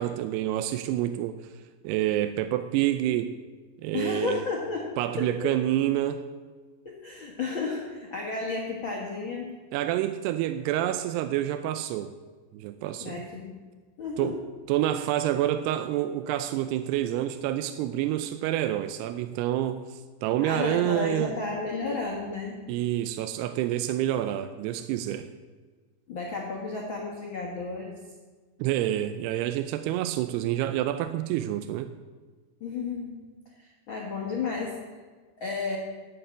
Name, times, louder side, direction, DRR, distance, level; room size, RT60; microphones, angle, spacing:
voice 1, 0.0-1.4 1.8-3.3 3.8-4.4 5.0-6.2 9.7-12.2 12.5-13.2 14.2-14.4 14.7-21.3 22.7-25.3 28.6-31.9, right 12 dB, 80° right, 10 dB, 2.5 m, -28 dB
voice 2, 3.9-4.9 5.2-5.6 6.8-9.5 13.0-13.6 14.0-14.3 20.4-22.6 26.1-27.9 32.6-33.2 33.6-34.8 35.4-35.8, left 4 dB, 85° left, -1 dB, 1.1 m, -32 dB
12.5 x 6.6 x 8.8 m, 1.4 s
omnidirectional pair, 4.9 m